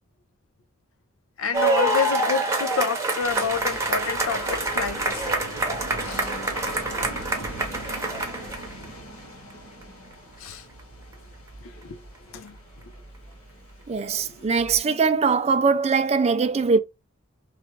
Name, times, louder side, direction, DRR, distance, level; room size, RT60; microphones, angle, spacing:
voice 1, 1.4-5.3 6.0-6.3 10.4-10.7 11.6-12.0 12.3-12.6 12.8-12.9, left 6 dB, 65° left, 0.5 m, -29 dB
sound 1, 1.5-8.8 9.8-9.9, right 2 dB, 15° right, 0.8 m, -26 dB
sound 2, 3.2-14.8, right 1 dB, 80° left, 1.9 m, -39 dB
voice 2, 13.9-16.8, right 5 dB, 30° right, 0.4 m, -21 dB
3.3 x 2.4 x 3.1 m
head